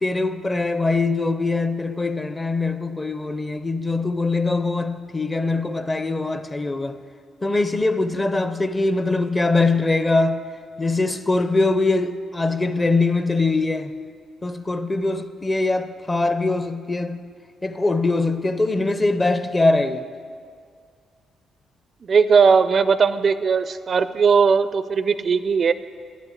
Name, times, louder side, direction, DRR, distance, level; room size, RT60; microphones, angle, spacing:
voice 1, 0.0-7.0 7.4-10.5 10.8-13.9 14.4-17.2 17.6-20.0, left 3 dB, 20° left, 0.6 m, -22 dB
voice 2, 22.1-25.7, right 5 dB, 45° right, 0.4 m, -18 dB
10.5 x 7.3 x 8.3 m
cardioid pair, 90°, 0 cm